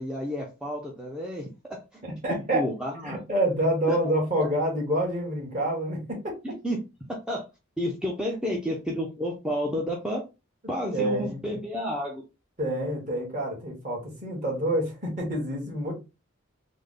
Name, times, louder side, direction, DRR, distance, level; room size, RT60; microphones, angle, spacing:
voice 1, 0.0-2.0 2.3-3.2 3.9-4.0 6.4-6.8 7.3-7.4 7.8-10.3 10.7-12.2, equal, 5° right, 0.5 m, -31 dB
voice 2, 2.2-2.6 3.0-6.3 10.9-11.4 12.6-15.9, right 1 dB, 35° right, 1.4 m, -27 dB
3.4 x 2.1 x 3.7 m
head